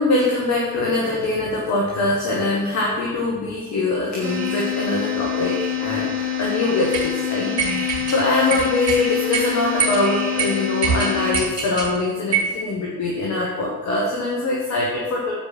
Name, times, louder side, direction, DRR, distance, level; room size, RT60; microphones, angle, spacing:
voice 1, 0.0-15.3, left 2 dB, 35° left, -3 dB, 1.7 m, -23 dB
sound 1, 4.2-11.3, left 7 dB, 60° right, 3.1 m, -26 dB
sound 2, 6.9-7.1 7.6-8.2 8.5-9.0 9.3-9.4 9.8-10.0 10.4-10.5 10.8-11.9 12.3-12.5, right 5 dB, 85° right, 2.1 m, -23 dB
8.8 x 5.0 x 5.9 m, 1.3 s
figure-of-eight pair, 70°, 47 cm